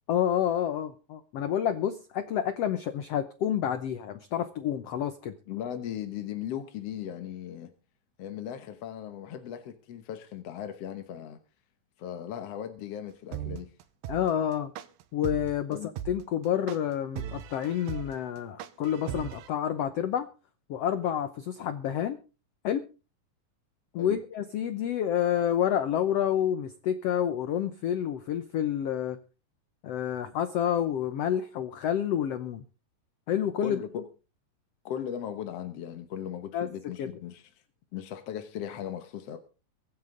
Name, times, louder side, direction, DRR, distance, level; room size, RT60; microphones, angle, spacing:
voice 1, 0.1-5.3 14.1-14.7 15.1-20.3 20.7-22.2 22.6-22.9 23.9-29.2 29.8-32.6 33.3-33.8 36.5-36.7 37.0-37.1, left 9 dB, 75° left, 1.4 m, -29 dB
voice 2, 5.5-7.7 8.2-11.4 12.0-13.7 15.7-15.9 23.9-24.2 33.6-34.0 34.8-37.5 37.9-39.4, left 10 dB, 60° left, 1.8 m, -37 dB
sound 1, 13.3-19.5, right 10 dB, 90° right, 2.8 m, -37 dB
23.5 x 9.3 x 3.8 m
omnidirectional pair, 4.0 m